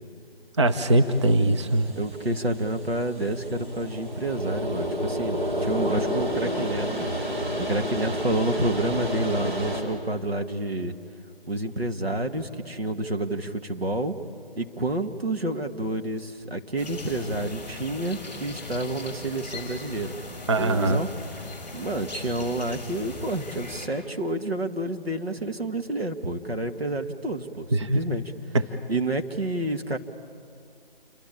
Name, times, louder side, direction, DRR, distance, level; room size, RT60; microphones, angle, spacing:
voice 1, 0.6-1.9 20.5-21.0 27.7-28.0 28.5-28.6, right 2 dB, 30° right, 8 dB, 0.9 m, -21 dB
sound 1, 0.7-9.8, equal, 55° right, 6.7 m, -30 dB
voice 2, 1.9-7.1 7.6-10.9 11.5-14.2 14.6-20.1 20.6-21.1 21.7-28.2 28.9-30.0, right 1 dB, 85° right, 5 dB, 2.2 m, -29 dB
sound 2, 16.8-23.9, left 2 dB, 5° right, 4.6 m, -39 dB
28.5 x 23.5 x 8.6 m, 2.3 s
figure-of-eight pair, 155°, 30 cm